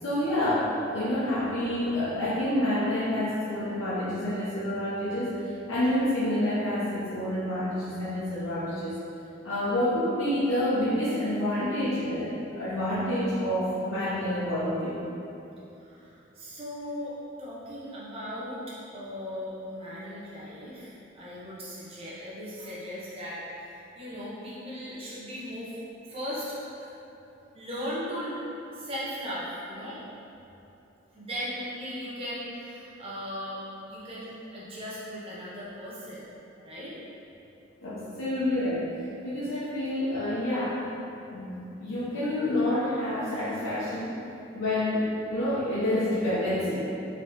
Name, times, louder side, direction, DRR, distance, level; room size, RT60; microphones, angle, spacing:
voice 1, 0.0-9.0 9.4-12.3 12.6-15.0 37.8-38.9 39.2-40.8 41.3-44.2 44.5-46.9, left 1 dB, 90° left, -12 dB, 0.8 m, -28 dB
voice 2, 15.8-17.1 17.4-25.8 26.1-26.9 27.5-28.3 28.7-30.0 31.1-36.3 36.6-36.9, equal, 30° right, -9 dB, 0.9 m, -38 dB
4.0 x 3.3 x 3.0 m, 2.8 s
head